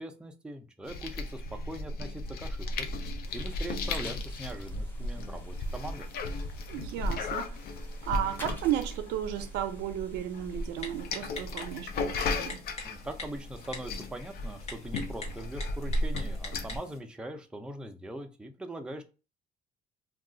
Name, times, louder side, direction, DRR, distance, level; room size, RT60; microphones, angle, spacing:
voice 1, 0.0-2.9 3.3-6.1 12.8-19.0, right 1 dB, 5° right, 0.4 m, -41 dB
sound 1, 0.8-16.8, left 2 dB, 65° left, 0.5 m, -35 dB
sound 2, 3.3-11.0, left 1 dB, 10° left, 0.8 m, -52 dB
voice 2, 6.7-7.6 8.0-12.6, right 11 dB, 90° right, 0.5 m, -34 dB
Typing, 10.8-17.0, left 3 dB, 40° left, 1.0 m, -45 dB
2.4 x 2.3 x 3.7 m
cardioid pair, 110°, 17 cm